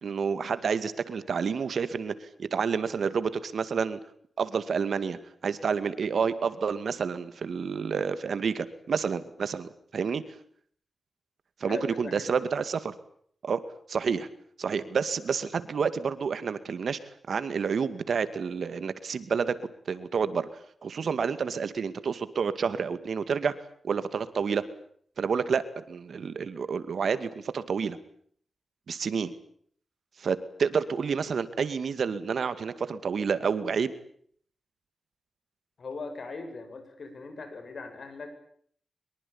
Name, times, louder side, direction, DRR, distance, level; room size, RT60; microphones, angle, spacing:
voice 1, 0.0-4.0 4.4-10.2 11.6-12.9 13.4-13.6 13.9-14.3 14.6-17.0 17.3-20.5 20.8-23.5 23.8-24.6 25.2-28.0 28.9-29.4 30.2-33.9, right 6 dB, 70° right, 13 dB, 2.2 m, -29 dB
voice 2, 11.6-12.3 35.8-38.3, left 3 dB, 60° left, 8 dB, 7.6 m, -39 dB
24.0 x 23.0 x 8.8 m, 0.62 s
wide cardioid pair, 95°, 0 cm